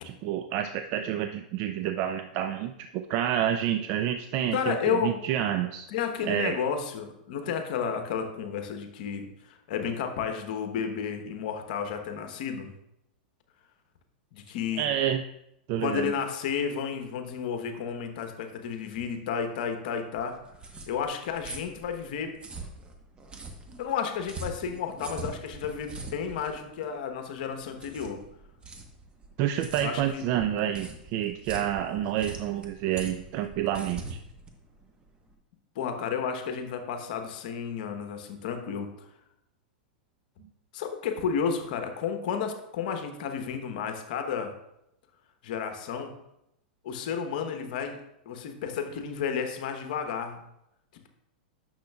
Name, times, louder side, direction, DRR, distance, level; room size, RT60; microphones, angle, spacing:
voice 1, 0.0-5.9 6.3-6.6 14.8-15.2 15.7-16.1 29.4-34.2, right 11 dB, 45° right, 8 dB, 0.4 m, -29 dB
voice 2, 4.5-5.2 5.9-12.7 14.3-14.9 15.8-20.4 20.9-22.3 23.8-28.2 29.8-30.2 35.7-38.9 40.7-44.5 45.4-46.1 46.8-50.4, left 7 dB, 60° left, 6 dB, 1.0 m, -32 dB
sound 1, 20.1-35.3, right 3 dB, 20° right, 1.1 m, -43 dB
10.0 x 6.4 x 2.3 m, 0.80 s
hypercardioid pair, 110°, 5 cm